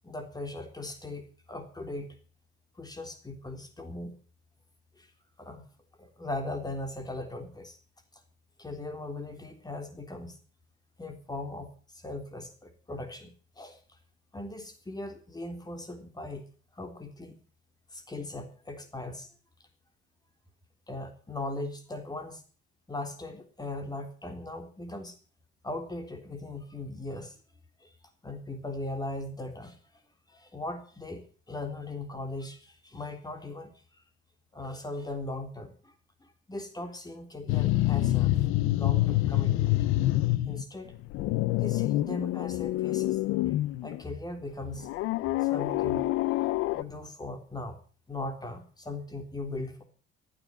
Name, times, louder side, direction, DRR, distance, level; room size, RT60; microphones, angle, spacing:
voice 1, 0.0-2.2 2.8-4.1 5.0-5.1 5.4-5.6 6.0-7.8 8.6-10.4 11.0-11.7 11.9-13.8 14.3-16.4 16.7-17.4 17.9-19.3 20.9-22.4 22.9-25.2 25.6-27.4 27.8-27.9 28.2-29.8 30.3-33.7 34.5-35.9 36.2-38.4 38.7-39.8 40.5-40.9 41.6-43.2 43.4-43.6 43.8-44.9 45.4-46.1 46.7-47.8 48.1-49.8, left 2 dB, 20° left, 6 dB, 3.7 m, -39 dB
sound 1, 37.5-40.6 40.9-44.0 44.8-46.8, left 16 dB, 90° left, 0.8 m, -27 dB
15.0 x 9.8 x 8.0 m, 0.40 s
cardioid pair, 95°, 21 cm